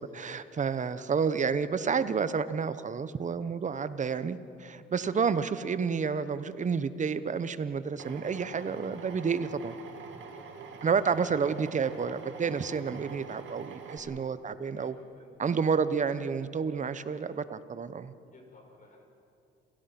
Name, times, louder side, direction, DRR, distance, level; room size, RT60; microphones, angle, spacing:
voice 1, 0.0-9.8 10.8-15.0 15.4-18.1, right 6 dB, 40° right, 14 dB, 1.0 m, -30 dB
Drill, 8.0-14.0, right 5 dB, 75° right, 2.3 m, -45 dB
voice 2, 10.3-10.6 11.3-11.4 13.9-14.2 14.7-15.6 17.1-17.3 18.3-19.0, left 2 dB, 40° left, 1 dB, 6.3 m, -56 dB
29.0 x 17.0 x 6.0 m, 2.6 s
cardioid pair, 90°, 20 cm